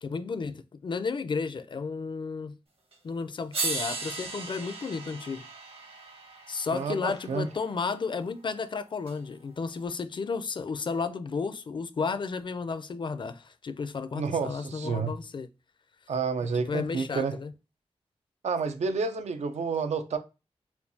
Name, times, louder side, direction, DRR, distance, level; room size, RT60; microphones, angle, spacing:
voice 1, 0.0-2.5 3.0-5.5 6.5-15.5 16.5-17.5, left 4 dB, 45° left, 0.4 m, -33 dB
sound 1, 2.9-3.0 3.5-7.7 9.1-9.2, right 3 dB, 55° right, 1.1 m, -36 dB
voice 2, 6.7-7.5 14.1-15.1 16.1-17.4 18.4-20.2, right 5 dB, 80° right, 0.5 m, -30 dB
4.4 x 2.2 x 2.7 m
wide cardioid pair, 80°, 11 cm